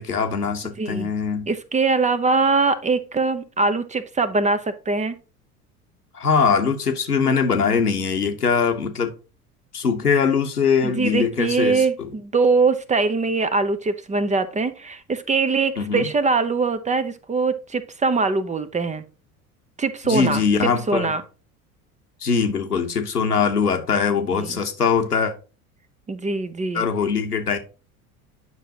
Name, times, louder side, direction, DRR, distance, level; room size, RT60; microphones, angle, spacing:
voice 1, 0.0-1.5 6.1-9.1 9.7-12.1 15.8-16.1 20.0-21.1 22.2-25.3 26.7-27.6, left 6 dB, 90° left, 1.1 m, -22 dB
voice 2, 0.8-1.1 1.5-5.1 10.8-19.0 19.8-20.4 20.9-21.2 24.3-24.6 26.1-26.8, right 4 dB, 15° right, 0.7 m, -22 dB
9.5 x 5.9 x 2.9 m
figure-of-eight pair, 70°, 45 cm